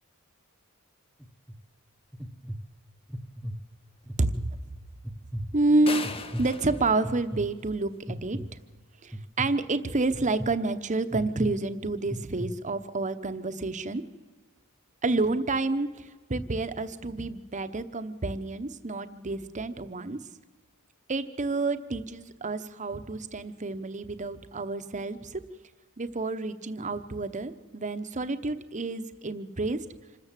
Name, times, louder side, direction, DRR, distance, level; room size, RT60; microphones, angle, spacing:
sound 1, 1.2-1.6 2.1-2.6 3.1-3.6 4.1-4.5 5.0-5.5 6.0-6.5 7.0-7.4 8.1-8.5 9.1-9.5 10.1-10.5 11.1-11.5 12.1-12.5, equal, ahead, 1.0 m, -35 dB
voice 1, 5.5-6.1 6.4-8.4 9.0-14.0 15.0-20.2 21.1-25.4 26.0-29.8, right 2 dB, 35° right, 10 dB, 1.0 m, -29 dB
sound 2, 5.9-8.0, left 4 dB, 25° left, 1.0 m, -38 dB
26.5 x 13.5 x 7.5 m, 1.4 s
head